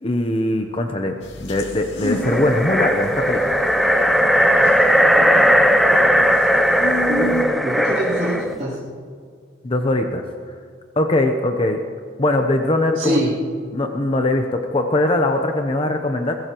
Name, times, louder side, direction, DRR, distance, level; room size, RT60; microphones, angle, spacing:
voice 1, 0.0-3.6 9.6-10.3 11.0-11.8 12.2-13.2 13.7-16.4, left 2 dB, 30° left, 4 dB, 0.8 m, -21 dB
sound 1, 1.2-7.4, right 1 dB, 65° left, 2.3 m, -32 dB
sound 2, 2.1-8.6, equal, ahead, 0.6 m, -17 dB
voice 2, 7.1-8.8 13.0-13.3, equal, 35° right, -10 dB, 3.1 m, -24 dB
22.0 x 17.0 x 3.0 m, 2.1 s
head